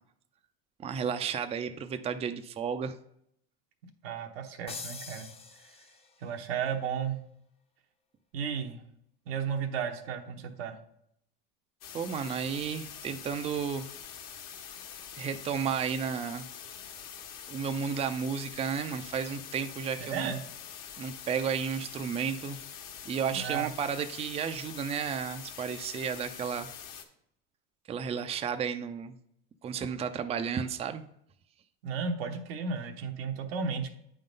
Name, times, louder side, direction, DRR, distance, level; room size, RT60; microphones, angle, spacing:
voice 1, 0.8-2.9 11.9-13.9 15.2-16.5 17.5-20.4 21.0-22.6 23.1-26.7 27.9-29.2 29.6-31.0, right 7 dB, 20° right, 8 dB, 0.4 m, -33 dB
voice 2, 4.0-5.3 6.2-7.2 8.3-8.8 9.3-10.8 20.0-20.4 23.3-23.7 31.8-33.9, right 6 dB, 85° right, 4 dB, 1.1 m, -34 dB
sound 1, 4.7-6.3, left 4 dB, 20° left, 0.8 m, -44 dB
sound 2, 11.8-27.0, left 8 dB, 60° left, 1.3 m, -45 dB
8.6 x 3.9 x 5.2 m, 0.72 s
supercardioid pair, 115°, 29 cm